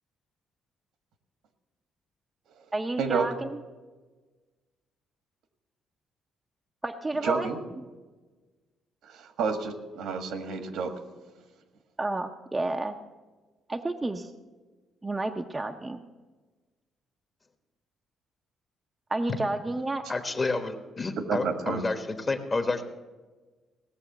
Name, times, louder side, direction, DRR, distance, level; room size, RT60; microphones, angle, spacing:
voice 1, 2.7-3.6 6.8-7.5 12.0-13.0 13.7-14.3 15.0-16.0 19.1-20.0, right 2 dB, 15° right, 3 dB, 0.6 m, -30 dB
voice 2, 7.2-7.6 9.0-10.9 21.2-21.8, right 5 dB, 80° right, 7 dB, 1.6 m, -30 dB
voice 3, 20.1-22.8, left 3 dB, 25° left, 7 dB, 1.2 m, -30 dB
17.5 x 6.8 x 6.8 m, 1.3 s
cardioid pair, 130°, 0 cm